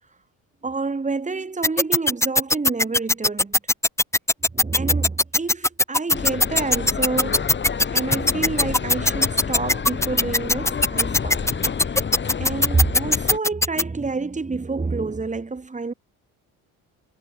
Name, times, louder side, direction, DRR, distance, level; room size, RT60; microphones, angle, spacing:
voice 1, 0.6-3.6 4.5-7.5 7.9-11.4 11.8-12.0 12.4-15.9, right 3 dB, 20° right, 4.4 m, -28 dB
sound 1, 1.6-13.8, left 2 dB, 10° left, 1.1 m, -18 dB
sound 2, 6.1-13.4, left 6 dB, 30° left, 2.1 m, -29 dB
cardioid pair, 100°, 35 cm